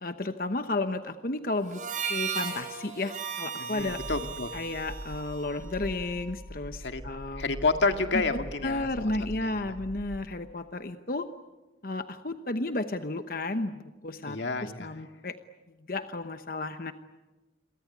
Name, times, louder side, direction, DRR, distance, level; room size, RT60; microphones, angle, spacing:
voice 1, 0.0-1.8 2.1-4.0 4.5-7.5 8.1-8.2 8.6-11.3 11.8-15.4 15.9-16.9, left 2 dB, 50° left, 9 dB, 1.0 m, -33 dB
Harmonica, 1.7-6.3, right 6 dB, 45° right, 5.8 m, -36 dB
voice 2, 3.6-4.5 6.8-7.0 7.3-9.1 9.3-9.7 14.2-14.9, left 3 dB, 85° left, 7 dB, 2.0 m, -30 dB
sound 1, 3.8-10.2, equal, 10° right, 4.2 m, -43 dB
29.5 x 23.5 x 8.6 m, 1.1 s
head